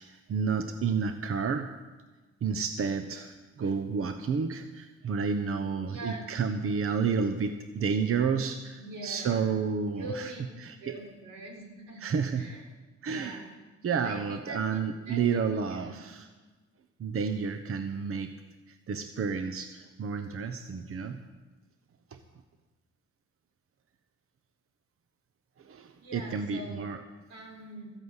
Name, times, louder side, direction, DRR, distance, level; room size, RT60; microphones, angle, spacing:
voice 1, 0.0-1.7 2.4-10.3 10.6-11.0 12.0-12.5 13.0-13.4 13.8-16.3 17.0-18.4 18.7-21.2 22.1-22.2 25.6-27.0, right 6 dB, 45° right, 8 dB, 0.9 m, -31 dB
voice 2, 5.8-6.2 8.0-8.2 8.8-9.5 9.9-10.4 10.8-12.0 12.3-12.7 13.1-13.5 14.0-16.0 26.0-26.8 27.3-27.9, right 1 dB, 85° right, 1 dB, 4.2 m, -43 dB
14.5 x 9.1 x 8.1 m, 1.3 s
cardioid pair, 90°, 30 cm